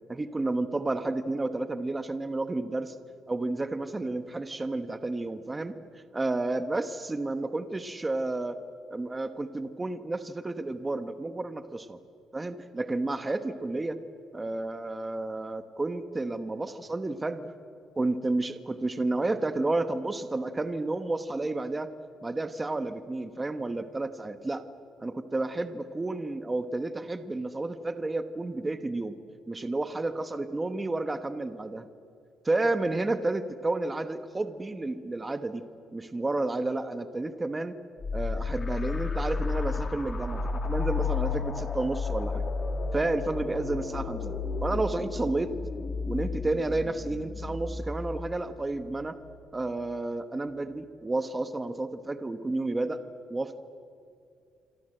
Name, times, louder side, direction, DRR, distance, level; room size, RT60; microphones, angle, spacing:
voice 1, 0.1-2.9 3.3-5.8 6.1-8.6 8.9-12.0 12.3-14.0 14.3-17.5 18.0-21.9 22.2-24.6 25.0-29.2 29.5-31.9 32.4-35.6 35.9-37.8 38.1-42.4 42.9-44.3 44.6-45.5 46.1-49.2 49.5-53.0 53.3-53.6, right 2 dB, 15° right, 10 dB, 1.1 m, -31 dB
sound 1, 38.0-49.4, left 4 dB, 30° left, 3.0 m, -32 dB
27.0 x 25.0 x 7.9 m, 2.4 s
cardioid pair, 135°, 0 cm